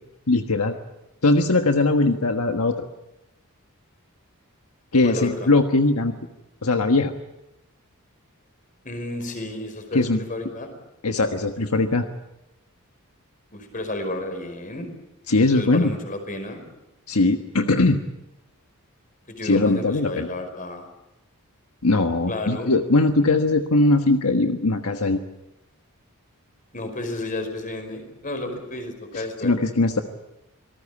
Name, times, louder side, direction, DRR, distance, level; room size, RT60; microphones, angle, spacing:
voice 1, 0.3-0.8 1.2-2.9 4.9-6.1 6.6-7.1 9.9-10.2 11.0-12.0 15.3-15.9 17.1-18.0 19.4-20.3 21.8-25.2 29.1-30.0, left 2 dB, 80° left, 6 dB, 1.4 m, -20 dB
voice 2, 5.0-5.5 8.8-10.7 13.5-14.9 15.6-16.6 19.3-20.8 22.3-22.7 26.7-29.6, left 2 dB, 40° left, 6 dB, 5.3 m, -31 dB
27.0 x 19.0 x 8.6 m, 0.92 s
head